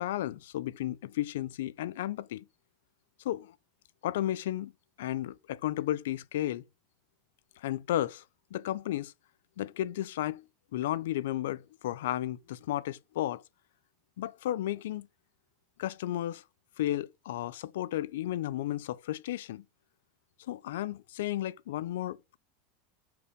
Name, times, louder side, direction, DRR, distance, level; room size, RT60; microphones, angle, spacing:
voice 1, 0.0-2.4 3.2-3.5 4.0-4.7 5.0-6.6 7.6-8.2 8.5-9.1 9.6-10.4 10.7-13.4 14.2-15.1 15.8-16.4 16.8-19.6 20.5-22.4, left 13 dB, 85° left, 0.6 m, -33 dB
6.9 x 4.8 x 5.1 m
supercardioid pair, 125°, 0 cm